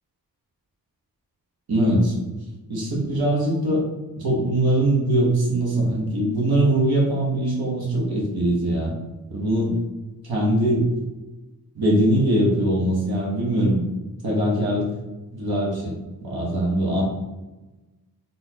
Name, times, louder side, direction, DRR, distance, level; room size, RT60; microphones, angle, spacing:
voice 1, 1.7-2.1 2.7-3.8 4.2-8.9 9.3-9.8 10.2-10.9 11.7-13.8 14.2-14.9 15.3-15.9 16.2-17.0, right 1 dB, 75° right, -4 dB, 1.4 m, -21 dB
4.2 x 3.8 x 2.9 m, 1.1 s
wide cardioid pair, 145°, 37 cm